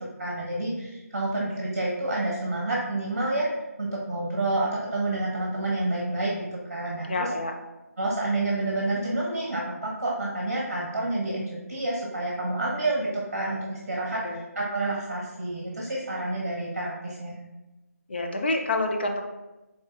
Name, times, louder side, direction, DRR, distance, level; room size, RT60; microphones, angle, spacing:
voice 1, 0.2-3.5 3.8-6.4 6.7-7.3 8.0-17.3, right 2 dB, 45° right, -4 dB, 1.0 m, -29 dB
voice 2, 7.1-7.6 14.2-14.4 18.1-19.2, left 2 dB, 40° left, 4 dB, 0.5 m, -27 dB
5.1 x 3.7 x 2.4 m, 1.0 s
figure-of-eight pair, 160°, 9 cm